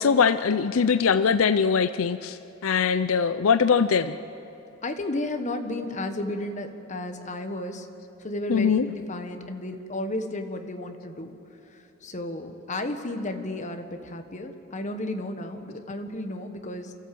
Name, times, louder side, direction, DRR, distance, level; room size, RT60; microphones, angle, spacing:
voice 1, 0.0-4.2 8.5-8.9, left 6 dB, 85° left, 13 dB, 0.5 m, -22 dB
voice 2, 4.8-7.9 8.2-11.4 11.7-16.9, left 1 dB, 35° left, 6 dB, 1.3 m, -33 dB
28.5 x 14.0 x 7.7 m, 2.9 s
head